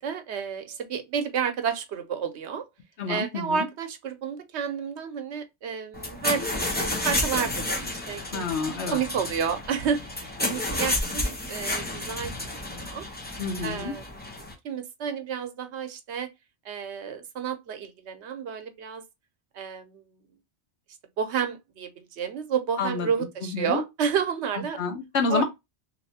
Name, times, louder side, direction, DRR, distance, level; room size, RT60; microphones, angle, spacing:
voice 1, 0.0-2.6 3.1-8.5 8.9-11.2 11.5-13.0 13.6-16.3 16.6-19.0 19.5-20.2 21.2-24.8 25.3-25.4, right 7 dB, 85° right, 1.0 m, -31 dB
voice 2, 3.0-3.7 8.3-9.0 13.4-13.9 22.8-23.1 23.5-23.8 24.8-25.4, left 4 dB, 85° left, 1.1 m, -28 dB
sound 1, 5.9-14.5, left 1 dB, 10° left, 0.6 m, -31 dB
3.2 x 2.9 x 2.7 m
omnidirectional pair, 1.1 m